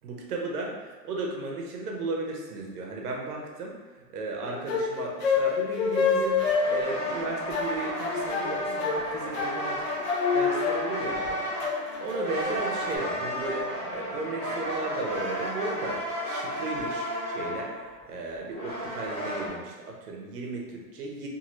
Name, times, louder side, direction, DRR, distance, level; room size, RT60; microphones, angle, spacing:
voice 1, 0.0-3.8 4.1-9.9 10.3-11.4 12.0-17.7 18.1-21.3, right 3 dB, 70° right, -1 dB, 0.8 m, -35 dB
sound 1, 4.4-13.0, left 5 dB, 45° left, 0.4 m, -28 dB
sound 2, 6.3-19.5, equal, 10° left, 0.8 m, -33 dB
2.6 x 2.6 x 2.9 m, 1.2 s
supercardioid pair, 180°, 48 cm